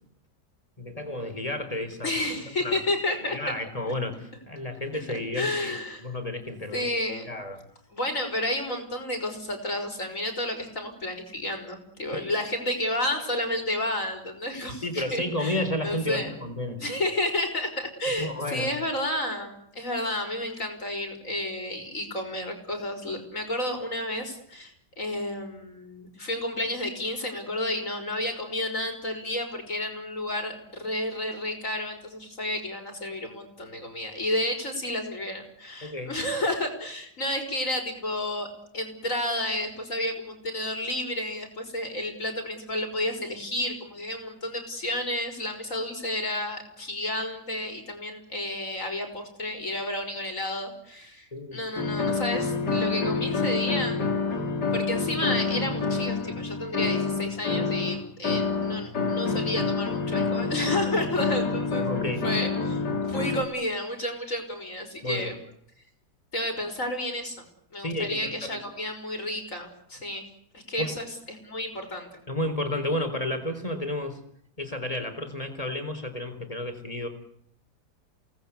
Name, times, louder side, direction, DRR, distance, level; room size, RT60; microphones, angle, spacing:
voice 1, 0.8-2.1 2.6-2.8 3.1-6.9 7.3-7.6 12.1-12.3 14.8-16.9 18.1-18.7 35.8-36.2 51.3-51.6 61.8-62.3 65.0-65.3 67.8-68.6 70.8-70.9 72.3-74.2 74.6-77.1, left 1 dB, 20° left, 8 dB, 4.0 m, -32 dB
voice 2, 2.0-3.4 5.3-6.1 6.7-7.4 7.9-15.6 15.8-16.3 16.8-38.5 38.7-54.0 54.7-61.9 62.2-62.8 63.1-65.3 66.3-67.5 67.7-70.2 70.5-72.1, left 1 dB, 50° left, 5 dB, 6.0 m, -31 dB
sound 1, 51.8-63.4, left 4 dB, 75° left, 3.4 m, -27 dB
29.0 x 19.5 x 8.3 m, 0.72 s
omnidirectional pair, 1.8 m